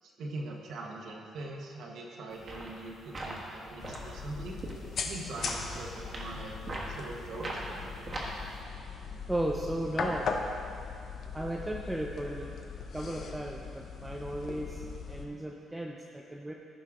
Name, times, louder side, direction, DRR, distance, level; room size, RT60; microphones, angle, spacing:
voice 1, 0.0-4.6 5.0-6.6 6.9-8.1, right 2 dB, 60° right, 0 dB, 1.2 m, -42 dB
sound 1, 2.3-8.6, right 1 dB, 30° right, 1.3 m, -41 dB
sound 2, 3.8-15.3, left 5 dB, 45° left, 0.7 m, -39 dB
voice 2, 9.3-10.3 11.3-12.6 12.9-16.5, right 1 dB, 10° right, 0 dB, 0.4 m, -35 dB
14.5 x 5.6 x 3.7 m, 2.5 s
cardioid pair, 155°, 0 cm